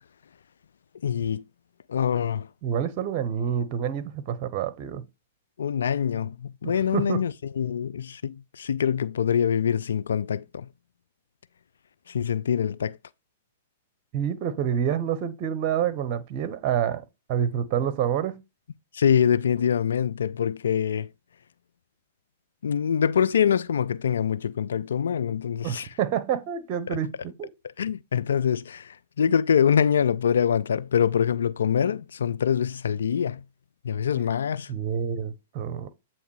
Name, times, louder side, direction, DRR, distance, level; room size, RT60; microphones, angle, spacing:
voice 1, 1.0-1.4 1.9-2.5 5.6-10.7 12.1-13.0 18.9-21.1 22.6-25.9 26.9-27.0 27.8-33.4 33.8-34.7, left 8 dB, 75° left, 0.3 m, -24 dB
voice 2, 2.6-5.0 6.9-7.2 14.1-18.4 25.6-27.5 34.7-35.9, right 9 dB, 40° right, 0.9 m, -28 dB
8.1 x 3.0 x 4.6 m
hypercardioid pair, 115°, 0 cm